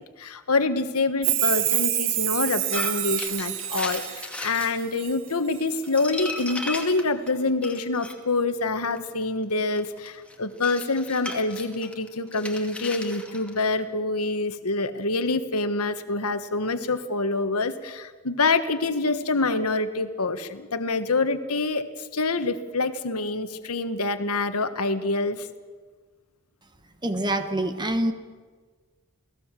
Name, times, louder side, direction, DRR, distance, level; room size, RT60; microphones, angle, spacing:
voice 1, 0.0-25.5, left 3 dB, 75° left, 10 dB, 1.5 m, -26 dB
Chime, 1.2-5.1 5.5-6.0 6.4-6.5, right 14 dB, 60° right, 1.2 m, -27 dB
sound 1, 2.7-4.7 5.3-8.2 8.9-13.8, left 2 dB, 5° left, 2.5 m, -36 dB
voice 2, 27.0-28.1, right 1 dB, 20° right, 8 dB, 1.3 m, -25 dB
29.0 x 18.5 x 7.6 m, 1.5 s
head